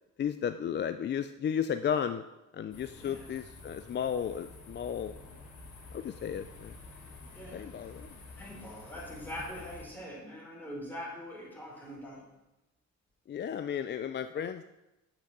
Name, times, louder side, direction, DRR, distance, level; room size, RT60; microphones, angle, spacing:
voice 1, 0.2-2.2 2.5-5.2 5.9-6.7 7.5-8.2 13.3-14.6, left 8 dB, 35° left, 10 dB, 0.4 m, -34 dB
sound 1, 2.7-9.8, left 3 dB, 75° left, 2.4 m, -49 dB
voice 2, 7.3-7.7 8.4-12.3, equal, 5° left, -4 dB, 3.7 m, -43 dB
6.4 x 5.9 x 6.9 m, 0.96 s
cardioid pair, 90°, 30 cm